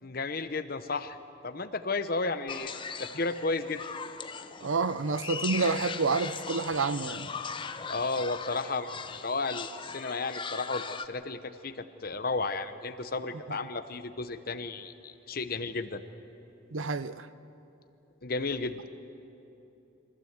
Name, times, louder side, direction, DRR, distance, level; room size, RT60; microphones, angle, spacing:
voice 1, 0.0-1.2 1.4-2.7 3.0-3.8 7.9-8.9 9.2-16.0 18.2-18.8, left 3 dB, 45° left, 0.9 m, -33 dB
sound 1, 2.5-11.1, left 6 dB, 25° left, 0.6 m, -39 dB
voice 2, 4.6-7.3 16.7-17.3, right 4 dB, 80° right, 0.7 m, -29 dB
24.0 x 15.5 x 8.1 m
head